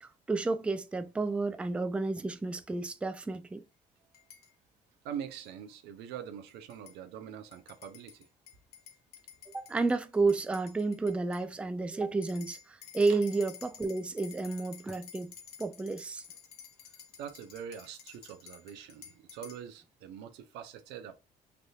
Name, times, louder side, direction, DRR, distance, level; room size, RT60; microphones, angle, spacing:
voice 1, 0.0-3.6 9.5-15.3 15.6-16.2, right 3 dB, 5° right, 0.3 m, -31 dB
sound 1, 4.1-4.5 5.4-5.5 6.5-7.0 7.5-11.5 12.2-19.6, left 8 dB, 65° left, 0.9 m, -52 dB
voice 2, 5.0-8.3 13.1-13.2 17.2-21.2, right 8 dB, 90° right, 0.6 m, -43 dB
3.4 x 2.7 x 2.3 m
cardioid pair, 110°, 17 cm